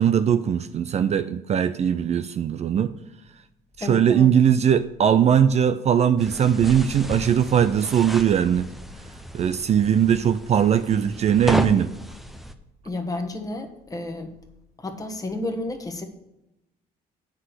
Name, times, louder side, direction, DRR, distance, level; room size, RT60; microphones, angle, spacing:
voice 1, 0.0-2.9 3.8-8.7 9.3-11.9, right 8 dB, 40° right, 12 dB, 0.4 m, -20 dB
voice 2, 3.8-4.3 12.8-14.3 14.8-16.0, left 2 dB, 20° left, 5 dB, 1.2 m, -31 dB
sound 1, 6.2-12.5, equal, ahead, 0.7 m, -33 dB
7.6 x 6.1 x 6.5 m, 0.91 s
cardioid pair, 110°, 17 cm